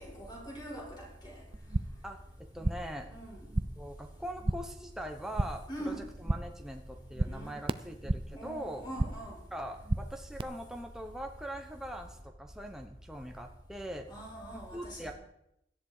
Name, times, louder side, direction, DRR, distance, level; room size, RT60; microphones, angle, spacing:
voice 1, 0.0-1.4 3.0-3.4 5.7-6.1 7.2-7.6 8.3-9.4 14.1-15.1, right 1 dB, 25° left, -4 dB, 7.0 m, -43 dB
sound 1, 1.5-2.1 2.4-3.0 3.3-3.9 4.2-4.8 5.1-5.7 6.0-6.6 6.9-8.4 8.7-9.3 9.6-10.4, right 2 dB, 30° right, 0.6 m, -34 dB
voice 2, 2.0-3.1 3.8-8.9 9.5-14.1 14.5-15.1, equal, 5° right, 3 dB, 1.1 m, -42 dB
17.5 x 13.0 x 5.0 m, 0.79 s
head